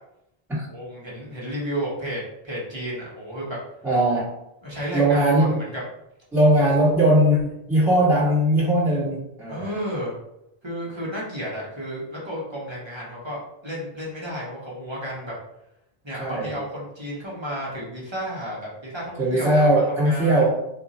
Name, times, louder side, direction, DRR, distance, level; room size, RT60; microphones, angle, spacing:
voice 1, 0.7-3.6 4.6-5.8 9.5-10.1 10.6-15.3 16.0-20.4, equal, 30° right, -6 dB, 0.9 m, -32 dB
voice 2, 3.8-4.3 4.9-5.6 6.3-9.7 16.2-16.5 19.2-20.6, right 1 dB, ahead, -9 dB, 1.3 m, -19 dB
2.5 x 2.4 x 4.0 m, 0.82 s
omnidirectional pair, 1.0 m